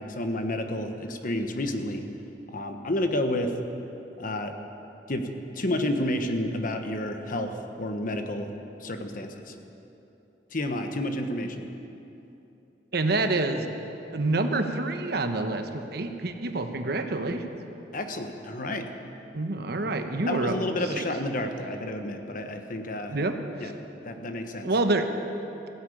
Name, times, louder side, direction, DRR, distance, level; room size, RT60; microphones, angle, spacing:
voice 1, 0.0-2.0 2.5-3.5 4.2-4.5 5.1-8.5 8.8-9.6 10.5-11.7 17.9-18.9 20.3-23.2 23.6-23.7 24.0-24.7, left 1 dB, 50° left, 6 dB, 1.2 m, -30 dB
voice 2, 12.9-13.7 14.1-17.4 19.3-20.6 21.0-21.1 23.1-23.7 24.6-25.1, right 2 dB, 65° right, 6 dB, 1.1 m, -27 dB
16.0 x 10.0 x 8.6 m, 2.9 s
head